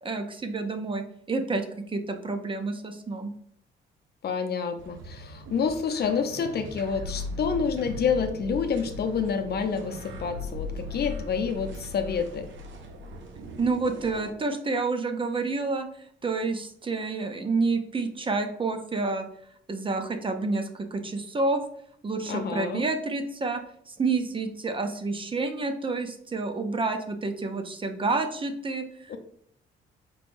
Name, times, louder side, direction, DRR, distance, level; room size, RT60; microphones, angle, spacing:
voice 1, 0.0-3.3 13.6-15.9 16.2-19.3 19.7-21.6 22.0-23.6 23.9-29.2, right 3 dB, 25° right, 7 dB, 0.5 m, -29 dB
voice 2, 4.2-12.5 22.3-22.8 29.1-29.2, left 6 dB, 55° left, 7 dB, 0.6 m, -28 dB
sound 1, 4.8-14.3, left 2 dB, 75° right, 0.7 m, -39 dB
4.5 x 3.4 x 2.5 m, 0.67 s
cardioid pair, 90°, 20 cm